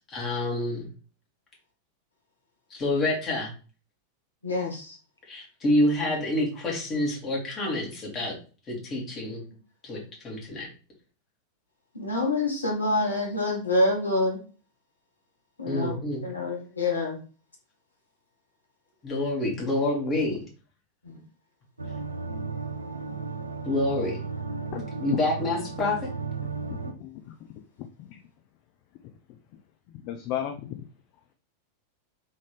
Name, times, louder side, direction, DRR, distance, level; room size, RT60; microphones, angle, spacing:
voice 1, 0.1-0.9 2.7-3.5 5.3-8.3 8.7-9.4 9.8-10.7 15.7-16.2 19.0-20.4 23.6-24.2 25.0-26.0, left 1 dB, 25° left, -2 dB, 2.1 m, -27 dB
voice 2, 4.4-5.0 11.9-14.4 15.6-16.0 16.2-17.2 21.1-21.2, left 2 dB, 80° left, 0 dB, 1.2 m, -26 dB
sound 1, 21.8-26.9, right 4 dB, 80° right, 0.5 m, -34 dB
voice 3, 24.7-25.2 26.7-27.3 28.0-28.2 30.0-30.7, left 11 dB, 45° left, 5 dB, 0.5 m, -35 dB
3.8 x 3.7 x 3.3 m, 0.36 s
figure-of-eight pair, 90°, 0 cm